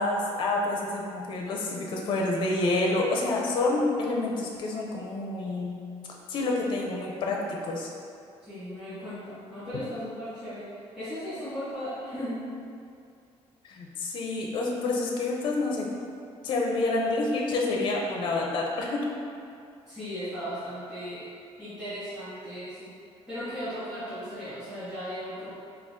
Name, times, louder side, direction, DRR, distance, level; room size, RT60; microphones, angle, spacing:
voice 1, 0.0-5.8 6.3-7.9 13.6-15.9 16.4-19.0, left 2 dB, 45° left, -1 dB, 0.5 m, -28 dB
voice 2, 8.4-10.7 10.9-12.4 19.9-21.2 21.6-22.9 23.3-25.5, equal, 5° right, -18 dB, 1.4 m, -36 dB
3.5 x 2.3 x 3.6 m, 2.4 s
cardioid pair, 175°, 12 cm